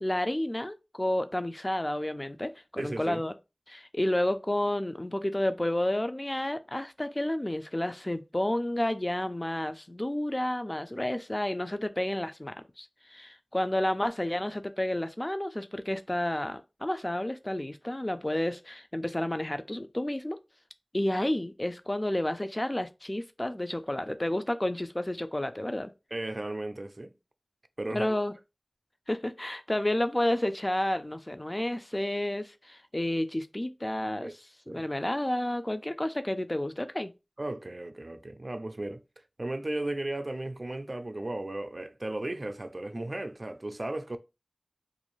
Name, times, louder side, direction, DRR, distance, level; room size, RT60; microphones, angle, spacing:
voice 1, 0.0-3.3 3.7-20.4 20.9-25.9 27.9-28.3 29.1-34.3 34.7-37.1, left 1 dB, 30° left, 0.3 m, -31 dB
voice 2, 2.8-3.2 26.1-27.1 27.8-28.2 34.2-34.3 34.7-34.8 37.4-39.0 39.4-44.2, right 1 dB, 55° right, 0.3 m, -35 dB
2.5 x 2.3 x 3.0 m
wide cardioid pair, 45°, 0 cm